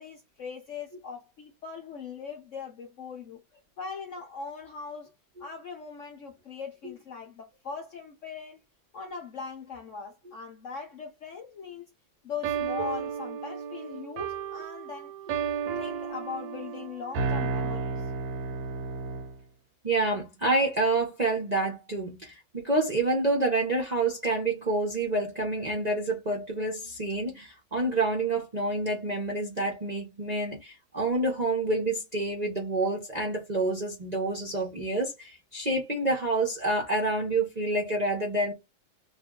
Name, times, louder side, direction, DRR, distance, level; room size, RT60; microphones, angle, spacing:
voice 1, 0.0-3.4 3.8-5.1 5.4-8.6 8.9-11.8 12.2-15.1 15.8-18.1, left 6 dB, 60° left, 0.8 m, -40 dB
sound 1, 12.4-19.4, right 5 dB, 85° right, 1.4 m, -33 dB
voice 2, 19.8-38.5, right 2 dB, 40° right, 0.6 m, -28 dB
2.8 x 2.6 x 3.6 m
omnidirectional pair, 2.0 m